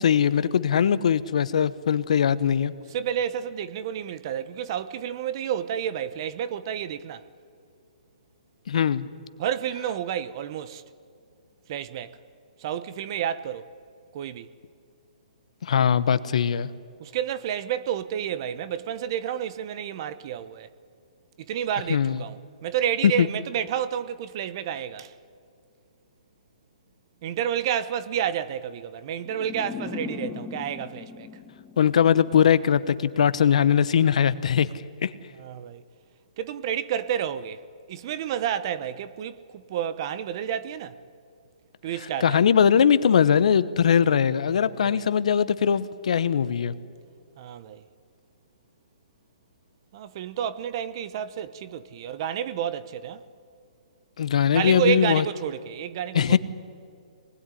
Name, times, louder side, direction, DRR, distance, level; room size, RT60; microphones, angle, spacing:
voice 1, 0.0-2.7 8.7-9.1 15.6-16.7 21.9-22.2 23.2-23.3 31.8-34.7 35.0-35.1 42.2-46.7 54.2-55.2 56.1-56.4, left 8 dB, 65° left, 1.1 m, -21 dB
voice 2, 2.9-7.3 9.4-10.8 11.7-12.2 12.6-13.7 14.1-14.5 17.0-20.7 21.4-25.1 27.2-31.3 35.3-35.8 36.4-37.6 37.9-41.0 41.8-42.4 44.7-45.1 47.4-47.8 49.9-53.2 54.5-56.4, right 9 dB, 35° right, 1.0 m, -30 dB
sound 1, 29.2-32.4, left 6 dB, 10° left, 1.2 m, -38 dB
25.5 x 20.5 x 9.9 m
hypercardioid pair, 160°, 4 cm